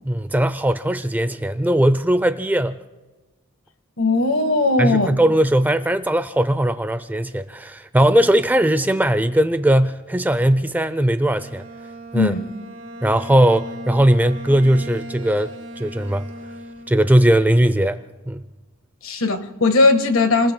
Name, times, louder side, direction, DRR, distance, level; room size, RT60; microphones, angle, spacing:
voice 1, 0.1-2.8 4.8-11.6 12.1-12.3 13.0-16.3 16.9-18.0 18.3-18.4, right 1 dB, 10° right, 0.4 m, -19 dB
voice 2, 4.0-5.1 12.1-12.5 19.0-20.5, left 3 dB, 90° left, 1.5 m, -18 dB
Bowed string instrument, 11.2-17.3, equal, 70° right, 3.2 m, -37 dB
29.5 x 20.5 x 2.2 m
head